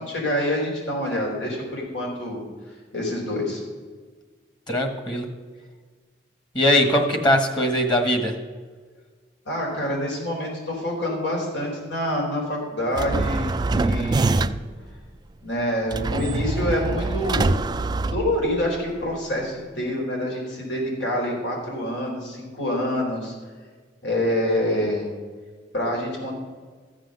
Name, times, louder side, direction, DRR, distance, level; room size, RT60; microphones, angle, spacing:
voice 1, 0.0-2.4 2.9-3.6 9.5-14.4 15.4-17.5 18.1-23.3 24.0-25.1 25.7-26.3, left 1 dB, 90° left, -1 dB, 4.4 m, -26 dB
voice 2, 4.7-5.3 6.5-8.3, left 1 dB, 25° left, 5 dB, 1.4 m, -20 dB
sound 1, 12.9-14.8 15.9-18.8, right 3 dB, 25° right, 0.3 m, -24 dB
14.0 x 7.6 x 6.7 m, 1.5 s
head